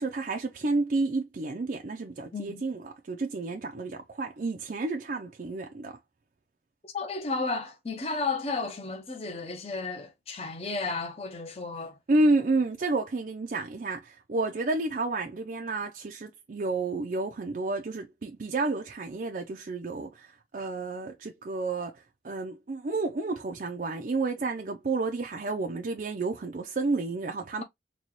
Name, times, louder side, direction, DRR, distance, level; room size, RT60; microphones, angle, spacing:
voice 1, 0.0-6.0 12.1-27.6, right 3 dB, 45° right, 0.4 m, -30 dB
voice 2, 6.9-12.0, left 3 dB, 35° left, 0.7 m, -33 dB
4.0 x 2.2 x 3.0 m
head